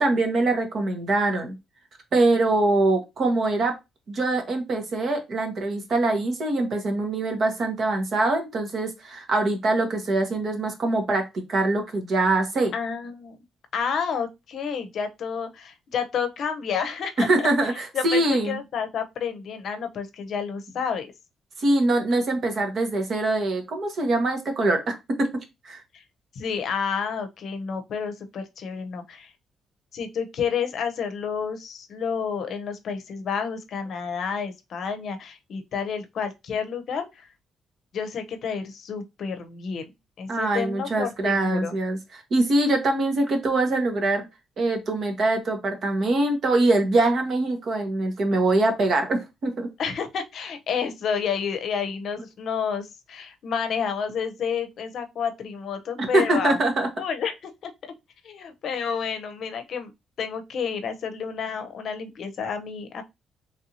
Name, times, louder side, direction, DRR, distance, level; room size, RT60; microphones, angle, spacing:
voice 1, 0.0-1.5 2.1-3.8 4.1-12.7 17.2-18.6 21.6-25.3 25.6-25.8 40.3-42.0 42.3-44.2 44.6-49.7 56.0-56.9, right 2 dB, 55° right, 1.1 m, -23 dB
voice 2, 12.7-13.4 13.7-17.5 17.9-21.1 25.9-26.0 26.3-29.3 29.9-37.3 37.9-39.9 40.2-41.7 49.8-56.6 57.0-57.7 58.2-59.9 60.2-63.0, left 6 dB, 65° left, 0.6 m, -30 dB
3.3 x 2.6 x 2.8 m
cardioid pair, 90°, 0 cm